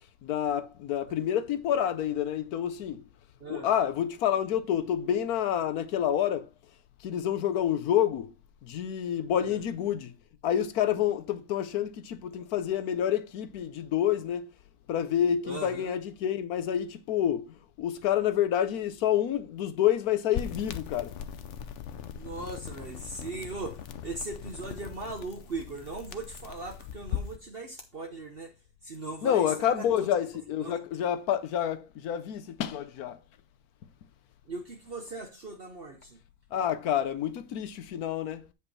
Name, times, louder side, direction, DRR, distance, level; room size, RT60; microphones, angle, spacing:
voice 1, 0.2-3.0 3.5-6.5 7.0-8.3 8.6-10.1 10.4-14.5 14.9-21.2 29.2-33.2 36.5-38.5, left 10 dB, 75° left, 1.2 m, -28 dB
voice 2, 3.4-3.7 9.4-9.6 15.4-16.0 22.1-28.5 28.8-30.1 30.6-30.8 34.5-36.2, right 3 dB, 45° right, 1.1 m, -39 dB
sound 1, 20.3-27.4, left 8 dB, 60° left, 0.9 m, -39 dB
8.3 x 5.3 x 4.2 m
omnidirectional pair, 1.6 m